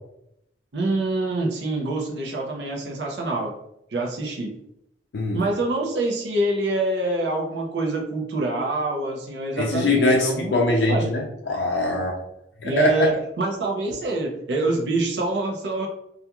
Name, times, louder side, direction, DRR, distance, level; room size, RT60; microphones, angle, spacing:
voice 1, 0.7-3.5 3.9-4.5 5.3-11.1 12.6-15.9, right 2 dB, 75° right, 0 dB, 0.5 m, -25 dB
voice 2, 9.6-12.2 12.6-13.1, left 2 dB, 90° left, -1 dB, 0.4 m, -22 dB
2.4 x 2.2 x 2.8 m, 0.79 s
head